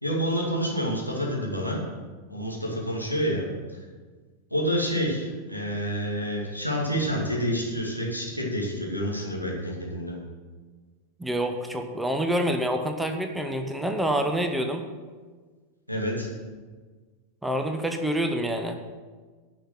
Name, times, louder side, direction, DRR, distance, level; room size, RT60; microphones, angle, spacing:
voice 1, 0.0-1.8 2.3-3.5 4.5-10.2 15.9-16.3, equal, 90° right, -2 dB, 2.3 m, -28 dB
voice 2, 11.2-14.8 17.4-18.8, right 1 dB, 5° right, 5 dB, 0.9 m, -27 dB
10.5 x 6.0 x 7.9 m, 1.4 s
figure-of-eight pair, 90°, 0 cm